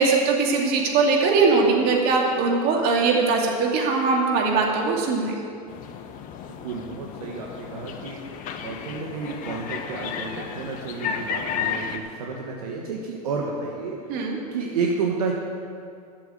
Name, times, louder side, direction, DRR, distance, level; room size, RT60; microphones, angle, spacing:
voice 1, 0.0-5.3 14.1-14.4, right 4 dB, 50° right, 0 dB, 2.4 m, -21 dB
sound 1, 5.7-12.0, left 7 dB, 45° left, 1.0 m, -33 dB
voice 2, 6.6-8.2 8.6-15.3, right 4 dB, 80° right, -1 dB, 1.3 m, -31 dB
12.0 x 6.9 x 7.5 m, 2.3 s
hypercardioid pair, 100°, 19 cm